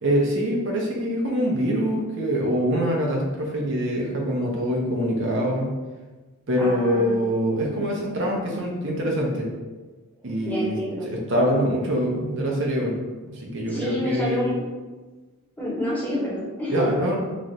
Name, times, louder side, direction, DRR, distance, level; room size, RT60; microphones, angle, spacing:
voice 1, 0.0-5.7 6.5-9.5 10.2-10.8 11.0-13.0 13.3-14.5 16.7-17.2, equal, 55° right, -1 dB, 0.7 m, -24 dB
voice 2, 6.6-7.3 10.4-11.1 13.7-14.6 15.6-16.9, equal, 5° left, -7 dB, 1.0 m, -28 dB
3.1 x 2.5 x 4.0 m, 1.3 s
head